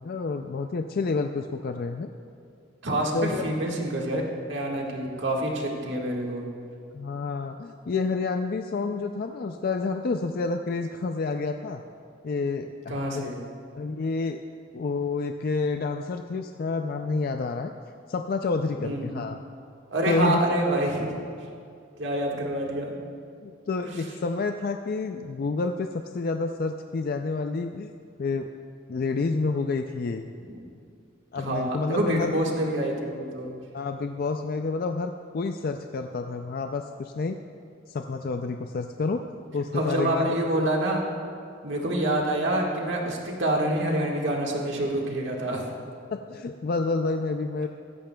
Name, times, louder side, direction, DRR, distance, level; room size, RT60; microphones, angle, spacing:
voice 1, 0.0-2.1 3.1-3.4 6.9-11.8 12.2-13.3 13.8-14.4 14.7-17.7 18.1-19.4 20.1-20.4 23.4-25.9 26.1-27.9 28.2-28.5 28.9-30.3 31.3-32.5 33.7-37.4 37.9-39.2 39.5-40.4 46.1-47.7, left 3 dB, 50° left, 6 dB, 0.4 m, -29 dB
voice 2, 2.8-4.2 4.5-6.5 12.9-13.4 18.8-19.1 19.9-21.1 22.0-23.0 23.8-24.0 30.5-30.6 31.3-33.5 39.7-41.0 41.6-45.6, right 1 dB, 65° right, -1 dB, 1.7 m, -27 dB
16.0 x 13.5 x 2.3 m, 2.4 s
head